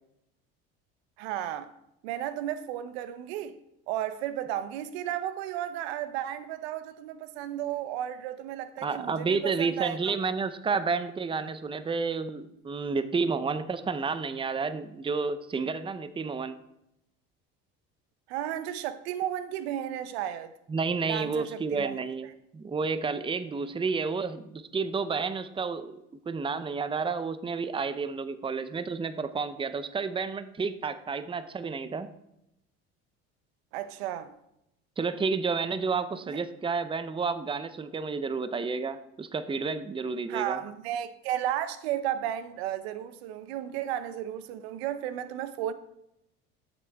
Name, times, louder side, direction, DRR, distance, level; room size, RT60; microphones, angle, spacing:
voice 1, 1.2-1.7 2.0-3.6 3.9-10.1 18.3-20.5 21.1-22.0 33.7-34.3 40.3-45.7, right 11 dB, 85° right, 0.8 m, -33 dB
voice 2, 8.8-16.6 20.7-32.1 35.0-40.6, right 4 dB, 15° right, 0.7 m, -31 dB
13.0 x 7.9 x 3.5 m
supercardioid pair, 90°, 31 cm